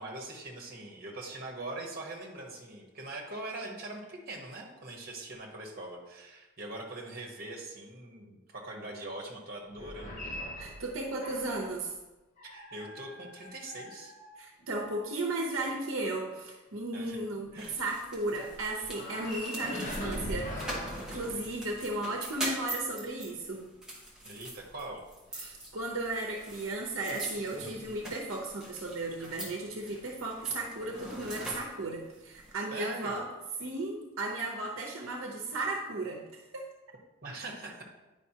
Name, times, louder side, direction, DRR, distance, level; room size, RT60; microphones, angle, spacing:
voice 1, 0.0-10.4 12.4-14.1 16.9-17.2 17.5-17.7 24.2-25.0 32.7-33.2 37.2-37.8, right 2 dB, 45° right, 0 dB, 1.2 m, -42 dB
sound 1, 9.7-11.7 12.4-14.8 18.9-22.0, equal, 35° left, 1.0 m, -42 dB
voice 2, 10.6-11.9 14.4-17.5 17.8-20.5 21.0-23.7 25.3-33.3 33.6-36.7, right 2 dB, 70° right, 0 dB, 0.9 m, -35 dB
sound 2, 17.6-32.5, right 1 dB, 5° right, 1.2 m, -43 dB
9.3 x 5.1 x 2.9 m, 1.1 s
head